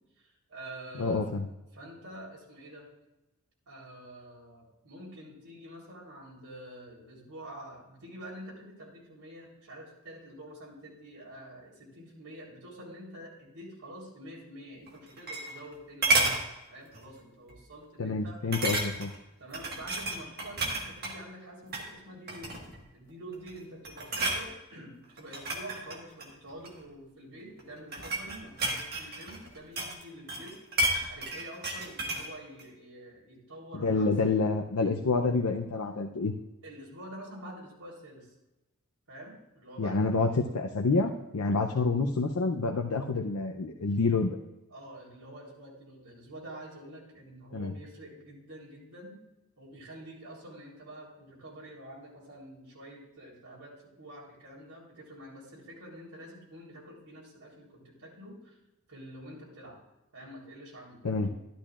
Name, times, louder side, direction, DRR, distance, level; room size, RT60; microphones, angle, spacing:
voice 1, 0.2-1.2 1.7-2.9 3.7-16.4 16.7-18.6 19.4-22.6 22.9-30.6 31.1-34.1 36.6-38.3 39.1-40.2 41.5-41.7 43.8-44.0 44.7-49.2 49.6-58.6 58.9-59.8 60.1-61.3, right 1 dB, 85° right, -4 dB, 3.7 m, -47 dB
voice 2, 1.0-1.5 18.0-19.1 33.7-36.3 39.8-44.4 47.5-47.7 61.0-61.3, left 3 dB, 85° left, 3 dB, 0.6 m, -28 dB
sound 1, 14.9-15.7 16.0-16.4 16.9-17.2 17.5-17.6 18.5-19.2 19.5-21.2 21.6-21.9 22.3-22.8 23.3-23.6 23.8-24.4 25.2-26.8 27.6-30.0 30.3-32.3 32.6-32.7, right 2 dB, 45° right, 1.6 m, -31 dB
12.0 x 12.0 x 2.5 m, 0.99 s
head